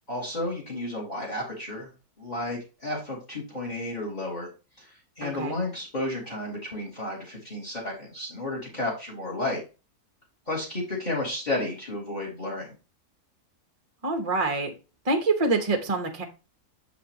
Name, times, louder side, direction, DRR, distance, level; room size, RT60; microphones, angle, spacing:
voice 1, 0.1-1.9 2.2-4.5 4.8-4.9 5.2-9.6 10.5-12.8, left 2 dB, 25° left, -2 dB, 2.8 m, -32 dB
voice 2, 5.2-5.5 14.0-14.7 15.0-16.2, right 3 dB, 25° right, 5 dB, 1.0 m, -26 dB
7.2 x 5.8 x 2.9 m, 0.30 s
omnidirectional pair, 1.7 m